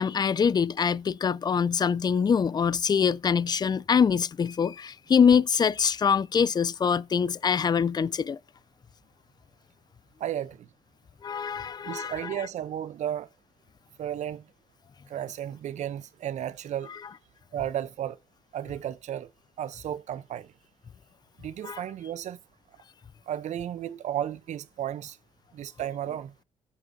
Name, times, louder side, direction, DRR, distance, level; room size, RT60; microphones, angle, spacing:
voice 1, 0.0-8.4 11.2-12.4 21.6-21.8, left 6 dB, 35° left, 0.4 m, -24 dB
voice 2, 10.2-10.7 11.8-13.3 14.0-14.5 15.1-16.9 17.5-18.2 18.5-19.3 19.6-20.5 21.4-22.4 23.3-25.2 25.5-26.3, right 10 dB, 70° right, 0.7 m, -33 dB
18.0 x 7.3 x 2.7 m
cardioid pair, 70°, 12 cm